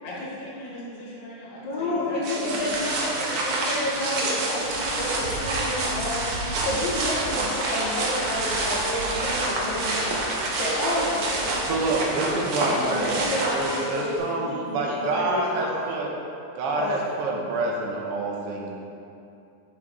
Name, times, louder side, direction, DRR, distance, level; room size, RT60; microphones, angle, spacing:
voice 1, 0.0-2.9, left 1 dB, 50° left, -6 dB, 2.4 m, -39 dB
voice 2, 1.6-10.2 10.6-12.2 12.6-15.8 16.8-17.1, left 1 dB, 85° left, -6 dB, 2.9 m, -30 dB
sound 1, 2.2-14.2, right 2 dB, 90° right, 1.2 m, -28 dB
sound 2, 5.0-5.4 6.7-8.5 9.6-9.7 10.2-11.7, right 1 dB, 50° right, 2.8 m, -45 dB
voice 3, 11.7-13.2 13.5-16.1 16.6-18.7, right 2 dB, 70° right, -1 dB, 1.4 m, -27 dB
8.6 x 5.7 x 4.1 m, 2.6 s
omnidirectional pair, 3.9 m